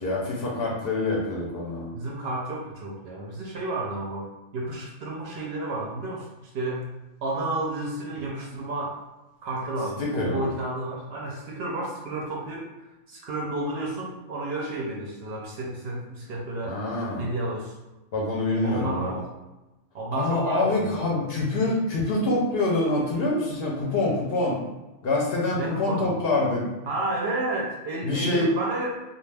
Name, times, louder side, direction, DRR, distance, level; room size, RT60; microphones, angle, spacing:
voice 1, 0.0-1.9 10.0-10.5 16.6-17.3 18.1-19.2 20.1-24.6 25.0-26.6 28.0-28.5, left 2 dB, 60° left, -3 dB, 0.7 m, -25 dB
voice 2, 1.9-4.3 4.5-6.3 6.5-6.9 7.2-9.0 9.4-12.7 13.1-16.8 17.2-17.7 18.6-19.2 19.9-21.1 25.5-26.2 26.9-29.0, right 2 dB, 65° right, -3 dB, 0.7 m, -31 dB
2.3 x 2.2 x 3.2 m, 1.0 s
omnidirectional pair, 1.3 m